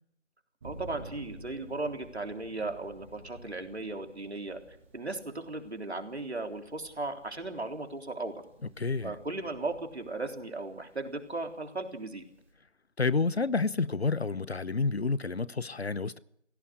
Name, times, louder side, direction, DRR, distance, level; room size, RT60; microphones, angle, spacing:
Thunder, 0.6-12.5, right 1 dB, 10° right, 1.8 m, -53 dB
voice 1, 0.6-4.6 4.9-8.4 9.0-12.2, right 2 dB, 65° right, 3.7 m, -36 dB
voice 2, 8.8-9.1 13.0-16.2, left 4 dB, 60° left, 0.9 m, -29 dB
27.0 x 17.0 x 6.5 m
figure-of-eight pair, 165°, 35 cm